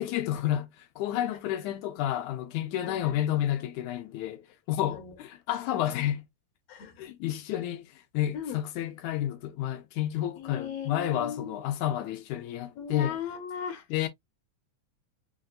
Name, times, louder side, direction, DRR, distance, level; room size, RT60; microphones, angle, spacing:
voice 1, 0.0-6.2 7.0-13.2 13.9-14.1, left 12 dB, 80° left, 2.0 m, -30 dB
voice 2, 2.8-3.6 4.9-5.1 6.7-7.1 8.3-8.6 10.4-11.6 12.8-13.8, left 7 dB, 60° left, 2.2 m, -38 dB
5.3 x 2.6 x 2.3 m
omnidirectional pair, 3.6 m